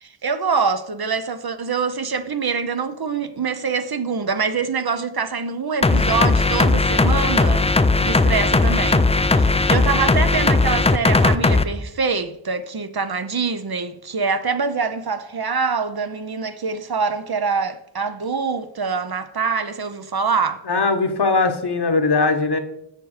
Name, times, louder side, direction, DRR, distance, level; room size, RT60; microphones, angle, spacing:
voice 1, 0.0-7.7 8.0-20.6, right 5 dB, 50° right, 0.7 m, -25 dB
sound 1, 5.8-11.6, left 3 dB, 15° left, 0.3 m, -17 dB
voice 2, 20.7-22.6, left 3 dB, 55° left, 1.1 m, -20 dB
7.5 x 6.6 x 4.9 m
wide cardioid pair, 75°, 47 cm